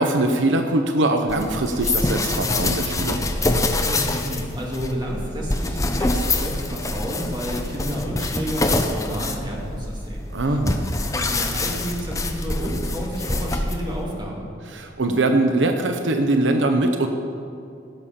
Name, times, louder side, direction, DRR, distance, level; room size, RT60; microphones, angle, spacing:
voice 1, 0.0-3.3 10.3-10.8 14.7-17.1, right 2 dB, 80° right, 5 dB, 0.8 m, -21 dB
sound 1, 1.3-14.0, left 2 dB, 15° left, 0.7 m, -25 dB
voice 2, 3.8-10.6 11.1-14.5, equal, 25° right, -2 dB, 2.1 m, -31 dB
16.0 x 6.9 x 5.7 m, 2.5 s
head